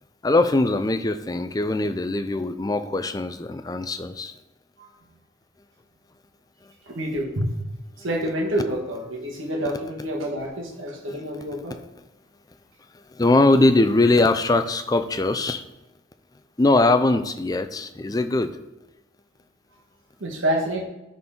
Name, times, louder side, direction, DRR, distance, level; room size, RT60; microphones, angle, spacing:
voice 1, 0.2-4.3 11.1-11.2 13.1-15.6 16.6-18.5, left 2 dB, 20° left, 9 dB, 0.4 m, -21 dB
voice 2, 6.9-7.5 8.0-11.8 20.2-20.8, right 1 dB, 80° right, -1 dB, 1.6 m, -27 dB
11.0 x 4.1 x 3.7 m, 0.97 s
head